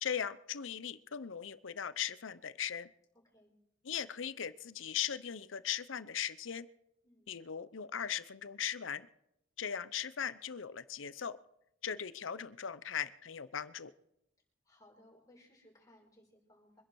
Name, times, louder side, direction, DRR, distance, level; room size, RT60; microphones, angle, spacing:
voice 1, 0.0-2.9 3.8-6.7 7.3-9.1 9.6-11.4 11.8-13.9, left 8 dB, 85° left, 15 dB, 0.7 m, -39 dB
voice 2, 14.6-16.8, left 1 dB, 20° left, -2 dB, 5.1 m, -63 dB
24.5 x 10.5 x 4.7 m, 0.80 s
head